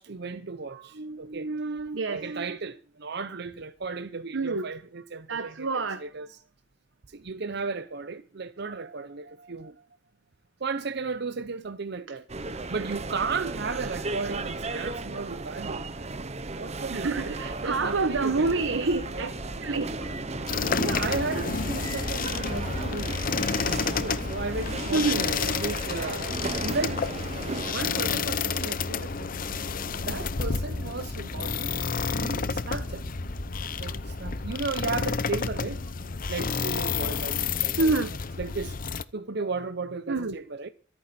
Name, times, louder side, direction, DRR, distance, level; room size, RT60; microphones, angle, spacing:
voice 1, 0.0-6.4 7.1-9.9 10.6-12.3 12.7-16.2 16.6-17.2 17.6-18.7 20.0-20.1 20.8-23.2 23.9-27.2 27.7-29.3 30.0-31.8 32.1-33.0 33.8-35.8 36.3-38.0 38.4-38.8 39.1-40.7, right 4 dB, 60° right, 0.8 m, -34 dB
voice 2, 1.9-2.2 4.3-4.7 5.3-6.1 16.9-19.3 19.6-19.9 20.5-20.7 24.9-25.3 34.2-34.3 37.8-38.2 39.4-39.5 40.1-40.4, right 3 dB, 80° right, 1.1 m, -27 dB
sound 1, 12.3-27.7, right 3 dB, 35° right, 1.0 m, -35 dB
sound 2, 17.4-34.6, equal, 30° left, 2.9 m, -42 dB
sound 3, 20.5-39.0, left 5 dB, 50° left, 0.7 m, -30 dB
24.5 x 9.1 x 4.4 m
head